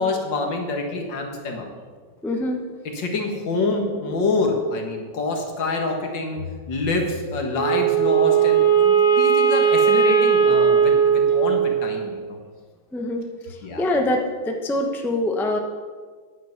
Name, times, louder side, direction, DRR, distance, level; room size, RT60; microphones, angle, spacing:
voice 1, 0.0-1.7 2.9-6.4 6.7-12.4 13.6-13.9, left 3 dB, 75° left, 3 dB, 2.3 m, -26 dB
voice 2, 2.2-2.6 12.9-13.2 13.5-14.2 14.4-15.6, left 1 dB, ahead, 2 dB, 0.7 m, -24 dB
Wind instrument woodwind instrument, 7.6-12.0, right 7 dB, 30° left, 1.2 m, -18 dB
10.0 x 9.3 x 6.0 m, 1.5 s
omnidirectional pair, 2.0 m